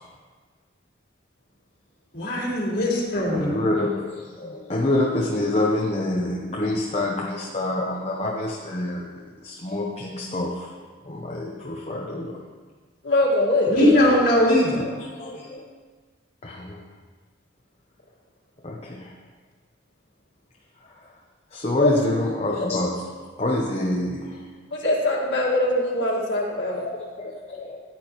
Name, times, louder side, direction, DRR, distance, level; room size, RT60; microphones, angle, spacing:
voice 1, 2.1-3.5 13.7-14.8, left 1 dB, 50° left, -5 dB, 2.9 m, -20 dB
voice 2, 3.3-9.1 9.4-10.7 11.0-12.4 14.9-15.6 16.4-16.8 18.6-19.1 21.5-24.5 26.9-27.8, left 1 dB, 35° left, -2 dB, 0.8 m, -27 dB
voice 3, 13.0-14.1 21.8-21.9 24.7-26.9, left 1 dB, 70° left, -2 dB, 2.0 m, -22 dB
14.0 x 9.0 x 3.1 m, 1.4 s
head